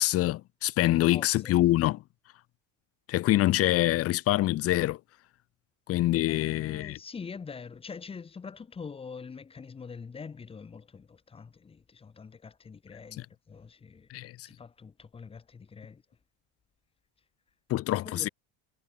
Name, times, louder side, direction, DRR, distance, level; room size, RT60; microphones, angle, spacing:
voice 1, 0.0-2.0 3.1-5.0 5.9-7.0 14.1-14.5 17.7-18.3, left 16 dB, 45° left, 4.0 m, -25 dB
voice 2, 0.9-1.6 6.3-14.1 14.4-16.0 18.0-18.3, left 5 dB, 15° left, 6.5 m, -44 dB
cardioid pair, 170°, 33 cm